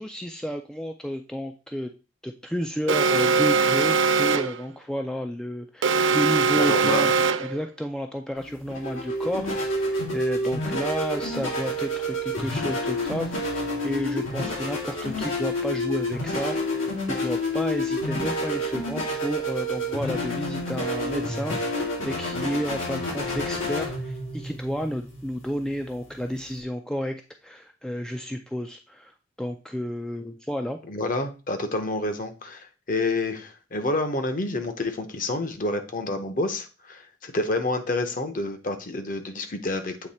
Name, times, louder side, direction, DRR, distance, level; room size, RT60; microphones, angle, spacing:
voice 1, 0.0-1.9 2.2-16.6 17.1-29.1 29.4-30.8, equal, 5° left, 5 dB, 0.3 m, -31 dB
Alarm, 2.9-4.6 5.8-7.6, right 4 dB, 70° right, 0.4 m, -21 dB
voice 2, 6.1-7.1 30.9-40.1, left 2 dB, 45° left, 8 dB, 0.8 m, -29 dB
sound 1, 8.4-26.6, left 1 dB, 85° left, 2.5 m, -29 dB
7.9 x 3.1 x 4.2 m, 0.32 s
head